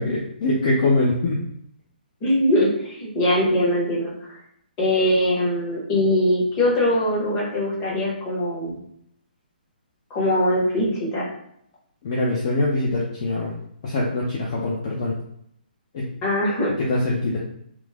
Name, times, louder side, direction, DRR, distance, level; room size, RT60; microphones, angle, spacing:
voice 1, 0.0-1.4 12.0-13.5 13.8-15.1 15.9-16.1 16.9-17.4, left 2 dB, 35° left, -4 dB, 0.5 m, -23 dB
voice 2, 2.2-4.4 4.8-8.7 10.1-11.3 16.2-16.7, left 1 dB, 20° left, -5 dB, 0.9 m, -22 dB
3.0 x 2.0 x 3.4 m, 0.72 s
hypercardioid pair, 165°, 5 cm